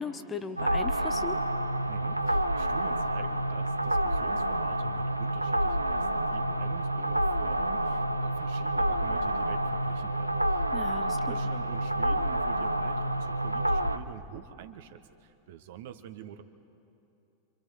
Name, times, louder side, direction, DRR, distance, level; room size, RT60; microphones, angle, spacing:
voice 1, 0.0-1.4 10.7-11.5, left 5 dB, 20° left, 10 dB, 1.0 m, -38 dB
sound 1, 0.6-14.0, right 1 dB, 85° right, 0.6 m, -28 dB
voice 2, 1.8-16.4, right 9 dB, 55° right, 9 dB, 1.0 m, -46 dB
28.5 x 24.5 x 4.7 m, 2.7 s
figure-of-eight pair, 90°, 0 cm